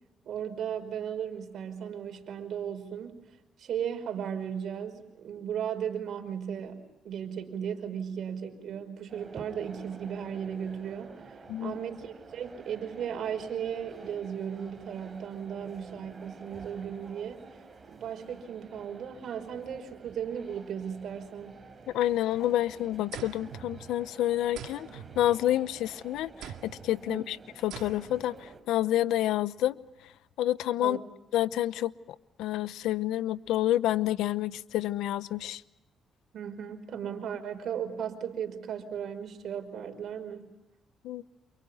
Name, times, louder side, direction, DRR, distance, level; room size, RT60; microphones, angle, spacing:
voice 1, 0.3-3.1 3.6-17.4 17.9-21.6 27.1-27.2 30.8-31.0 36.3-40.5, right 8 dB, 65° right, 5.3 m, -36 dB
sound 1, 9.1-28.6, right 4 dB, 30° right, 4.6 m, -50 dB
voice 2, 21.9-24.9 25.2-27.4 27.6-29.8 30.4-31.0 31.3-31.9 32.4-35.6 41.0-41.2, left 13 dB, 90° left, 0.8 m, -28 dB
sound 2, 23.1-24.2 24.6-25.8 26.4-27.0 27.7-28.3, right 10 dB, 85° right, 2.1 m, -45 dB
30.0 x 28.0 x 5.7 m
cardioid pair, 90°, 0 cm